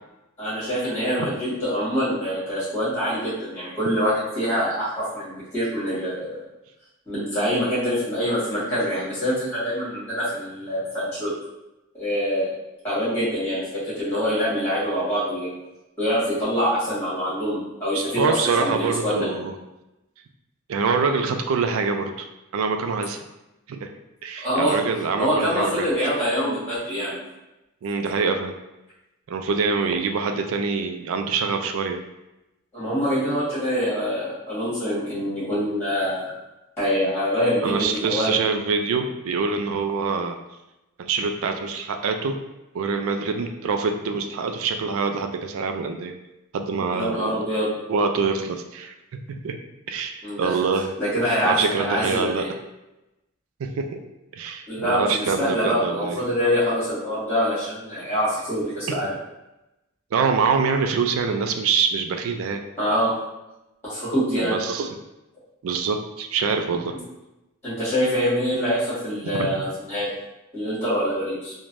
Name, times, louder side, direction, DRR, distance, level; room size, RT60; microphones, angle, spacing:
voice 1, 0.4-6.4 7.0-11.3 11.9-12.5 12.8-15.5 16.0-19.3 24.4-24.8 25.2-27.2 32.7-36.3 36.8-38.4 46.9-47.7 50.2-50.5 51.0-52.5 54.7-59.1 62.8-63.1 63.8-64.5 67.6-70.1 70.5-71.5, equal, 10° left, -11 dB, 1.3 m, -25 dB
voice 2, 17.9-19.5 20.7-22.3 22.5-23.2 23.7-23.9 24.2-25.9 27.8-28.5 29.3-32.0 37.6-40.4 41.0-42.4 42.7-46.1 46.5-47.5 47.9-48.9 49.4-49.6 49.9-50.9 51.4-52.5 53.6-54.0 54.3-56.2 58.9-59.1 60.1-62.6 64.4-64.9 65.6-66.9 69.2-69.5, right 5 dB, 75° right, 5 dB, 0.3 m, -25 dB
3.2 x 2.1 x 2.5 m, 0.96 s
head